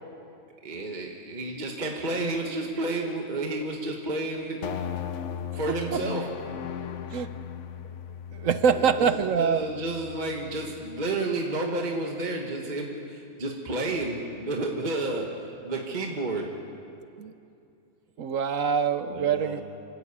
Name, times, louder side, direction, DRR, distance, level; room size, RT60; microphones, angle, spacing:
voice 1, 0.6-4.8 5.5-6.3 8.7-9.1 9.4-16.6 19.1-19.6, right 2 dB, 30° right, 1 dB, 1.6 m, -31 dB
sound 1, 4.6-11.1, left 8 dB, 60° left, 1.0 m, -37 dB
voice 2, 5.7-6.0 7.1-7.3 7.8-7.9 8.3-9.6 17.2-17.3 18.2-19.6, right 6 dB, 60° right, 11 dB, 1.0 m, -25 dB
26.0 x 14.0 x 8.6 m, 2.6 s
omnidirectional pair, 1.7 m